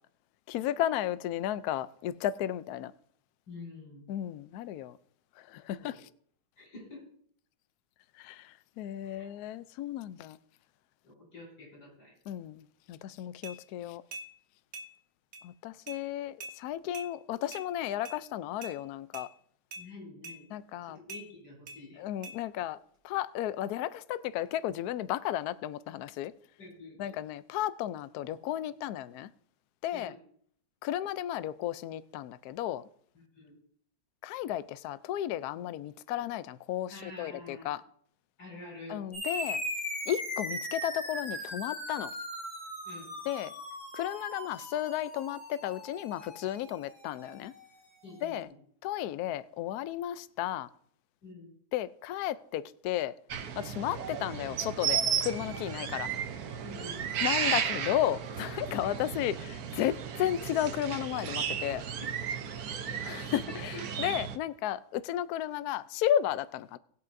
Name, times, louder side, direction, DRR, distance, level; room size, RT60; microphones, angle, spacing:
voice 1, 0.5-2.9 4.1-5.0 5.4-6.1 8.2-10.4 12.3-14.0 15.4-19.3 20.5-21.0 22.0-22.8 23.0-26.3 27.0-29.3 29.8-30.2 30.8-32.8 34.2-37.8 38.9-39.6 40.1-42.1 43.3-43.5 43.9-47.5 48.2-48.5 48.8-50.7 51.7-53.1 53.6-56.1 57.2-61.8 63.0-66.8, left 12 dB, 85° left, 0.8 m, -33 dB
voice 2, 3.5-4.0 5.8-6.0 6.6-7.1 9.0-9.3 11.0-12.1 19.8-20.5 20.9-22.0 26.6-27.2 29.9-30.2 33.1-33.6 36.9-37.7 38.4-39.0 42.8-43.1 48.0-48.5 51.2-51.5 56.6-57.0, left 2 dB, 65° left, 6.1 m, -48 dB
sound 1, 13.4-13.6 14.1-14.3 14.7-14.9 15.3-15.4 15.9-16.0 16.4-16.5 16.9-17.1 17.5-17.6 18.0-18.2 18.6-18.7 19.1-19.3 19.7-19.8 20.2-20.4 21.1-21.2 21.7-21.8 22.2-22.4, right 2 dB, 40° right, 1.5 m, -43 dB
sound 2, 39.1-48.0, left 1 dB, 45° left, 6.0 m, -39 dB
sound 3, 53.3-64.4, right 8 dB, 60° right, 1.1 m, -34 dB
19.0 x 8.2 x 2.6 m
omnidirectional pair, 2.2 m